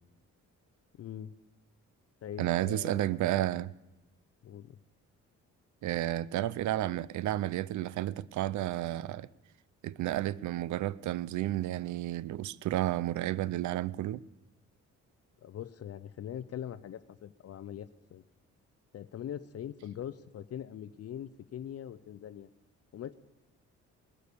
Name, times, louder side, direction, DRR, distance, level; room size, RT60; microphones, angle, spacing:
voice 1, 1.0-1.3 2.2-3.2 4.4-4.8 15.4-18.2 18.9-22.5 22.9-23.1, left 10 dB, 55° left, 0.7 m, -42 dB
voice 2, 2.4-3.7 5.8-9.3 9.8-14.2, right 14 dB, 70° right, 0.6 m, -32 dB
20.5 x 9.5 x 6.9 m
cardioid pair, 90°, 30 cm